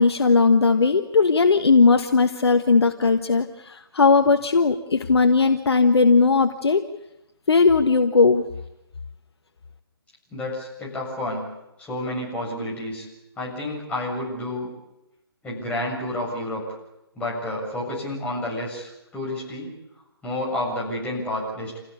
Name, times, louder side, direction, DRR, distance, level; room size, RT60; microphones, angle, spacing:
voice 1, 0.0-6.9 7.5-8.4, left 4 dB, 75° left, 7 dB, 1.5 m, -18 dB
voice 2, 10.3-11.5 11.8-13.1 13.4-14.7 15.4-16.6 17.2-19.7 20.2-21.8, left 1 dB, 10° left, -4 dB, 7.3 m, -30 dB
28.0 x 16.5 x 8.4 m, 0.90 s
figure-of-eight pair, 150°, 14 cm